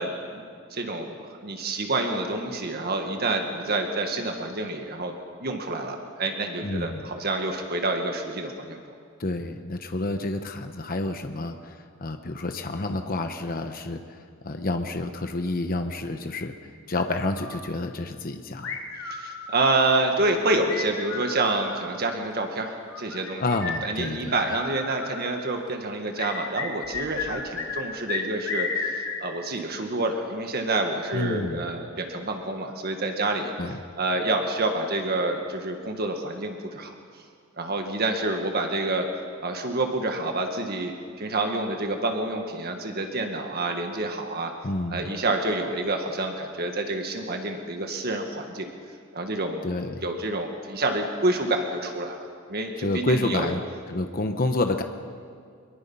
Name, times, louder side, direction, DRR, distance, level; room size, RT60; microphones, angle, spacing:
voice 1, 0.0-8.9 19.0-23.4 23.8-33.5 34.0-36.9 37.6-39.1 39.4-44.5 44.9-48.7 49.1-49.7 50.0-52.2 52.5-53.5, right 2 dB, 50° right, 4 dB, 1.7 m, -28 dB
voice 2, 6.6-7.1 9.2-11.7 12.0-14.0 14.4-16.5 16.9-18.7 23.4-24.3 31.1-31.7 33.6-33.8 44.6-45.1 49.6-50.0 52.8-53.6 53.9-54.8, left 2 dB, 45° left, 6 dB, 1.0 m, -29 dB
sound 1, 16.9-17.7 18.6-19.8 20.7-21.9 22.9-25.3 26.2-27.8 28.1-29.2, left 5 dB, 65° left, 2.7 m, -33 dB
24.0 x 22.5 x 5.6 m, 2.1 s
head